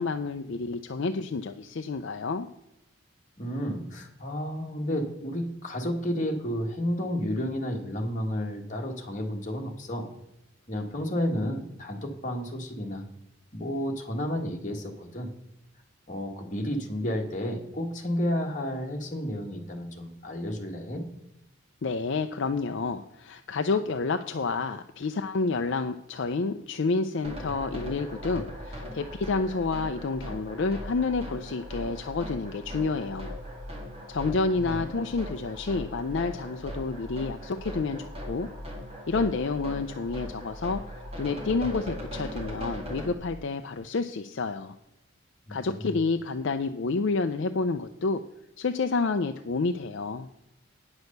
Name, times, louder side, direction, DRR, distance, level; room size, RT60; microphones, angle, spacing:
voice 1, 0.0-2.5 21.8-33.3 34.1-38.5 39.1-40.8 41.2-44.7 45.5-48.2 48.6-50.3, left 4 dB, 60° left, 7 dB, 0.5 m, -29 dB
voice 2, 3.4-10.1 10.7-13.0 13.5-15.3 16.1-21.0 34.6-34.9 45.5-45.8, equal, 35° left, 1 dB, 1.6 m, -31 dB
sound 1, 27.2-43.1, equal, 30° right, 2.2 m, -39 dB
9.6 x 6.3 x 6.6 m, 0.87 s
head